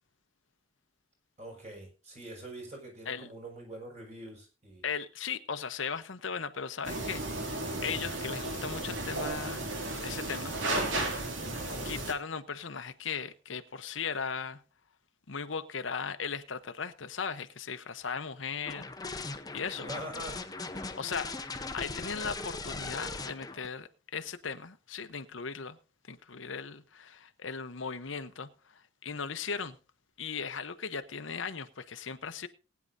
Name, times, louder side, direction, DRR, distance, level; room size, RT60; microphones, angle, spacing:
voice 1, 1.4-4.9 19.8-20.5, right 1 dB, 35° right, 5.5 m, -44 dB
voice 2, 4.8-7.2 7.5-9.7 10.0-11.3 11.8-14.6 15.3-19.9 20.9-25.8 26.1-29.8 30.2-32.5, left 6 dB, 75° left, 0.9 m, -38 dB
sound 1, 6.8-12.1, right 2 dB, 75° right, 2.6 m, -34 dB
sound 2, 18.7-23.7, left 3 dB, 20° left, 0.8 m, -39 dB
19.5 x 9.7 x 2.7 m
head